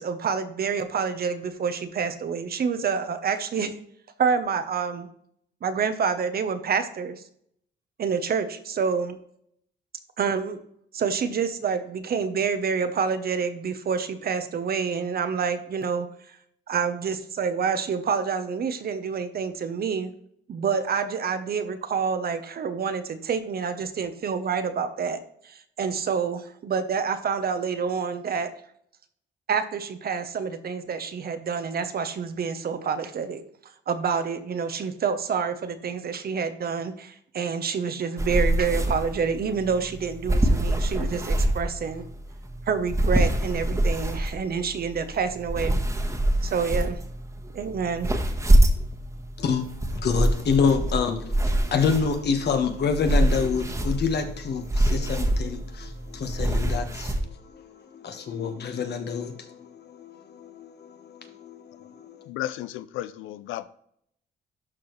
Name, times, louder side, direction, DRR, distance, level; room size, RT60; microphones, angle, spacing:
voice 1, 0.0-3.7 4.2-5.1 5.6-7.2 8.0-9.2 10.2-10.6 10.9-16.4 16.7-20.1 20.5-25.2 25.4-28.5 29.5-33.4 33.9-42.1 42.7-45.8 46.4-47.0 47.5-48.1, right 6 dB, 50° right, 0.9 m, -27 dB
sound 1, 38.2-57.2, right 1 dB, 15° right, 1.3 m, -25 dB
voice 2, 49.9-62.3, left 5 dB, 55° left, 1.4 m, -28 dB
voice 3, 62.3-63.7, left 13 dB, 90° left, 0.4 m, -33 dB
12.0 x 4.6 x 3.2 m
cardioid pair, 90°, 20 cm